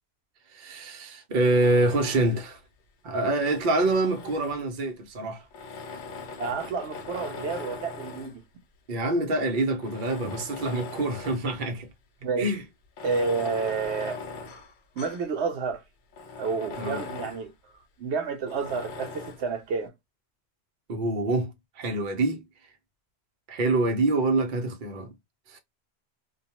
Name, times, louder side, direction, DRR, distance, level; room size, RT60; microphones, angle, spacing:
voice 1, 0.5-2.6 3.0-5.4 8.9-11.9 12.4-12.6 16.8-17.0 20.9-22.4 23.5-25.1 25.5-25.6, right 2 dB, 55° right, 0.8 m, -26 dB
Tools, 1.4-2.5 3.2-4.8 5.5-8.4 9.1-9.2 9.8-11.5 11.9-12.0 12.8-15.3 15.7-15.8 16.1-17.5 18.5-19.5, left 4 dB, 55° left, 0.7 m, -40 dB
voice 2, 6.4-8.4 12.2-12.5 13.0-14.2 15.0-15.8 16.4-17.5 18.0-19.9, right 5 dB, 80° right, 0.9 m, -30 dB
2.3 x 2.2 x 2.8 m
omnidirectional pair, 1.1 m